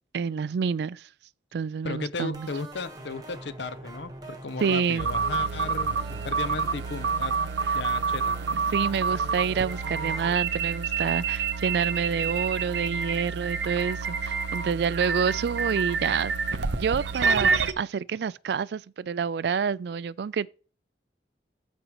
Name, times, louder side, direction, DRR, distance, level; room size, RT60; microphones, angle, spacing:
voice 1, 0.1-1.1 1.5-2.5 4.6-5.1 8.5-16.3 16.8-20.5, right 6 dB, 65° right, 0.3 m, -28 dB
voice 2, 1.8-7.4 7.7-8.4, left 3 dB, 80° left, 0.7 m, -35 dB
sound 1, 2.3-10.3, right 2 dB, 20° right, 1.2 m, -43 dB
sound 2, 5.0-17.7, right 5 dB, 90° right, 0.7 m, -28 dB
13.5 x 5.2 x 3.0 m
head